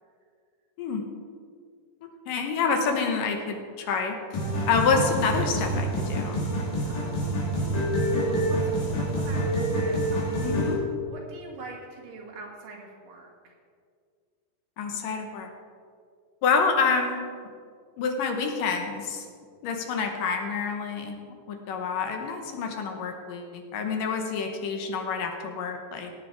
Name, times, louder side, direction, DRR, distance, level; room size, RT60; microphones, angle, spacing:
voice 1, 2.0-4.4 4.7-6.4 10.4-10.8 14.8-15.5 16.4-17.2 18.0-19.3 19.6-21.2 21.5-26.1, left 5 dB, 75° left, 4 dB, 2.6 m, -27 dB
sound 1, 4.3-10.7, right 1 dB, 55° left, 4.0 m, -27 dB
voice 2, 6.8-7.2 8.2-10.4 11.1-13.5, right 3 dB, 70° right, -2 dB, 3.6 m, -44 dB
17.5 x 8.4 x 4.7 m, 2.1 s
omnidirectional pair, 4.1 m